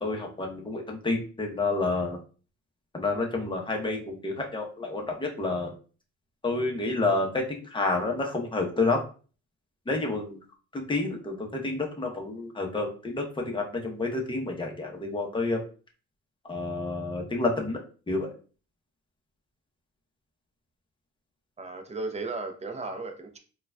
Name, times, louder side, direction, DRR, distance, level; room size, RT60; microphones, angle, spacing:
voice 1, 0.0-2.2 2.9-5.7 6.4-9.0 9.9-10.4 10.7-15.6 16.4-17.8 18.1-18.3, left 3 dB, 15° left, 1 dB, 0.8 m, -29 dB
voice 2, 21.6-23.4, right 3 dB, 20° right, 5 dB, 0.6 m, -35 dB
3.8 x 2.3 x 2.2 m, 0.38 s
cardioid pair, 90°, 30 cm